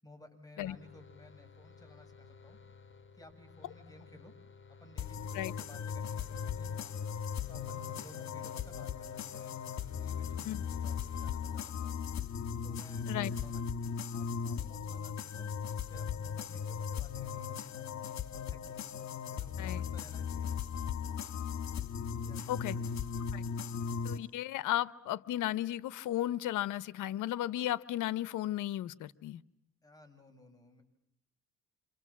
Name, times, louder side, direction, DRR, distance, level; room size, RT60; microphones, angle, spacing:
voice 1, 0.0-2.6 3.2-4.3 4.7-9.6 9.9-12.0 12.6-17.7 18.2-20.5 22.2-22.8 29.8-30.8, left 1 dB, 10° left, 7.4 m, -57 dB
sound 1, 0.7-12.0, left 5 dB, 40° left, 3.4 m, -56 dB
sound 2, 5.0-24.2, left 7 dB, 60° left, 2.3 m, -37 dB
voice 2, 24.0-29.4, left 13 dB, 85° left, 1.0 m, -34 dB
29.0 x 27.0 x 7.4 m
cardioid pair, 90°, 30 cm